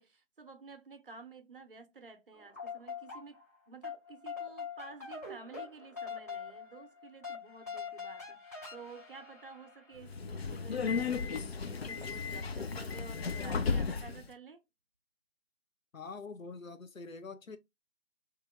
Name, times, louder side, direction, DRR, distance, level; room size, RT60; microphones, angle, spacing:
voice 1, 0.0-3.4 3.7-14.6, right 4 dB, 45° right, 0.7 m, -52 dB
sound 1, 2.3-3.6 3.8-10.0, left 6 dB, 10° left, 0.7 m, -44 dB
Subway metro underground, 10.0-14.3, left 5 dB, 50° left, 0.4 m, -34 dB
voice 2, 15.9-17.6, left 4 dB, 90° left, 0.8 m, -45 dB
3.4 x 3.0 x 3.5 m
figure-of-eight pair, 150°, 39 cm